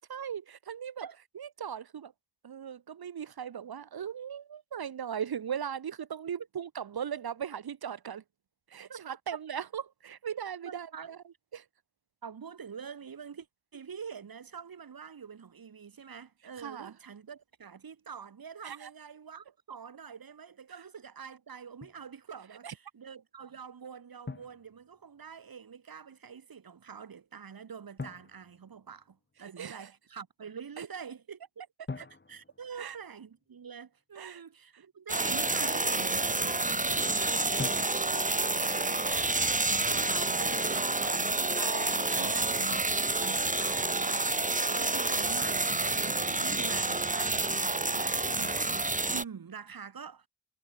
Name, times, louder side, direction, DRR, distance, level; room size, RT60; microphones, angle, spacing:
voice 1, 0.1-1.1 1.4-2.1 2.4-8.2 8.7-11.2 11.5-11.6 16.6-16.9 18.6-18.9 22.6-22.7 29.6-29.9 30.8-30.9 32.8-33.0 34.2-34.4 42.2-42.4 48.7-48.8, right 8 dB, 85° right, 4.1 m, -38 dB
voice 2, 10.6-11.1 12.2-13.5 13.7-31.6 31.9-42.8 43.2-50.3, right 6 dB, 70° right, 6.6 m, -46 dB
Drum, 21.8-22.1 24.3-25.4 28.0-29.4 31.9-33.6 37.6-38.5, left 3 dB, 30° left, 2.7 m, -44 dB
sound 1, 35.1-49.2, right 2 dB, 20° right, 2.4 m, -29 dB
cardioid pair, 75°, 36 cm